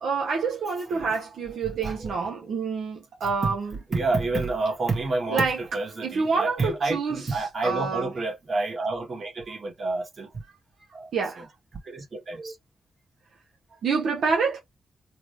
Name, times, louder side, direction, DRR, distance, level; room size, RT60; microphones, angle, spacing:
voice 1, 0.0-3.7 5.3-5.6 6.0-8.1 11.1-11.4 13.8-14.6, right 5 dB, 80° right, 0.8 m, -27 dB
voice 2, 1.6-2.2 3.2-3.6 3.9-10.5 10.9-11.1 11.4-11.5 11.8-12.6 13.7-13.8, right 3 dB, 50° right, 1.9 m, -29 dB
3.8 x 2.1 x 3.3 m
supercardioid pair, 50°, 0 cm